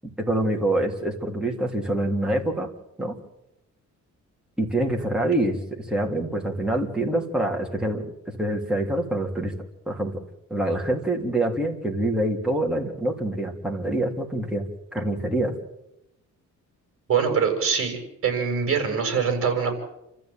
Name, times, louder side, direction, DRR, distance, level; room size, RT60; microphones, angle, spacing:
voice 1, 0.2-2.7 3.0-3.1 4.6-9.5 9.9-10.2 10.5-14.6 14.9-15.5, right 1 dB, 5° right, 0 dB, 3.3 m, -25 dB
voice 2, 17.1-19.8, right 6 dB, 45° right, 4 dB, 7.0 m, -24 dB
28.5 x 14.5 x 9.2 m, 0.86 s
wide cardioid pair, 165°, 30 cm